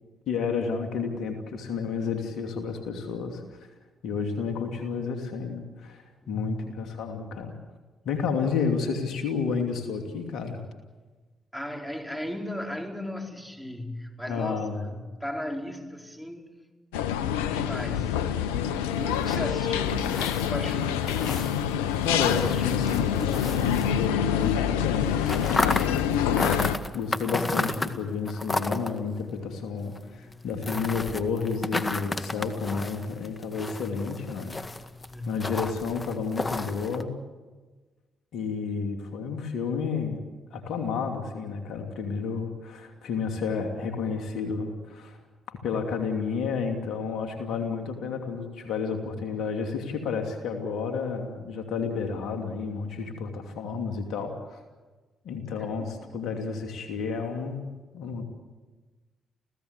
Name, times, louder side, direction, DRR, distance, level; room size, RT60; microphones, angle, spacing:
voice 1, 0.3-3.6 4.0-6.0 6.3-7.6 8.0-10.6 14.3-14.9 22.0-26.2 26.9-34.5 35.3-37.1 38.3-40.2 40.5-45.2 45.5-54.6 55.2-58.2, left 5 dB, 70° left, 4 dB, 2.8 m, -31 dB
voice 2, 6.2-6.7 8.1-8.3 11.5-16.7 17.3-18.1 18.9-21.5 35.1-35.5 55.6-56.0, left 1 dB, 5° left, 2 dB, 4.8 m, -36 dB
sound 1, 16.9-26.8, left 9 dB, 90° left, 0.8 m, -26 dB
sound 2, 18.5-24.5 24.7-37.0, left 2 dB, 30° left, 1.9 m, -34 dB
28.5 x 16.5 x 8.2 m, 1.3 s
hypercardioid pair, 45°, 0 cm